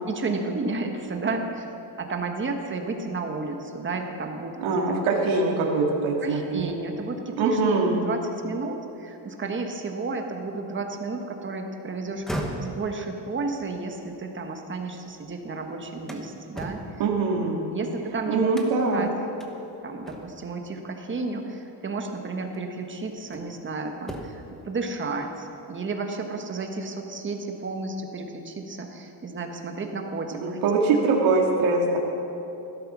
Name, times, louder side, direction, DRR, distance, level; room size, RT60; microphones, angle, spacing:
voice 1, 0.1-1.7 2.0-5.0 6.2-17.0 17.7-18.5 18.9-19.1 19.8-30.6, right 3 dB, 25° right, 4 dB, 1.3 m, -32 dB
voice 2, 4.6-6.7 7.4-8.0 17.0-17.7 18.3-19.1 30.4-32.0, right 3 dB, 70° right, -1 dB, 2.5 m, -23 dB
sound 1, 12.0-15.2 15.6-18.0 18.5-19.0 19.4-19.5 20.0-20.6 21.8-21.9 22.5-23.6 24.0-24.6, right 1 dB, ahead, 1.2 m, -38 dB
16.5 x 12.5 x 6.2 m, 2.9 s
cardioid pair, 160°, 49 cm